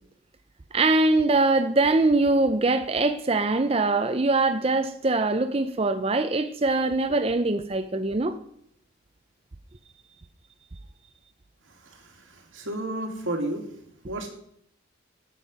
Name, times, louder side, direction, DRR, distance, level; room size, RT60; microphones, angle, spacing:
voice 1, 0.7-8.4, right 2 dB, 30° right, 0.5 m, -23 dB
voice 2, 11.7-13.7 14.0-14.3, right 1 dB, 90° right, 2.4 m, -32 dB
10.0 x 7.6 x 5.3 m
head